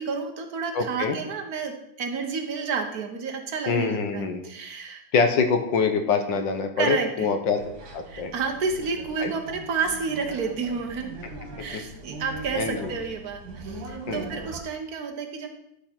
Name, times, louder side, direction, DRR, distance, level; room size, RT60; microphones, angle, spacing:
voice 1, 0.0-5.0 6.8-7.3 8.1-11.1 11.6-15.5, right 5 dB, 55° right, 4 dB, 1.6 m, -30 dB
voice 2, 0.7-1.2 3.7-4.4 5.1-7.6 7.9-8.3 9.2-9.3 11.7-11.8 12.6-12.9 14.1-14.3, left 5 dB, 75° left, 6 dB, 1.7 m, -25 dB
sound 1, 7.6-14.6, right 2 dB, 85° right, 2.5 m, -41 dB
11.5 x 5.6 x 4.5 m, 0.78 s
omnidirectional pair, 2.1 m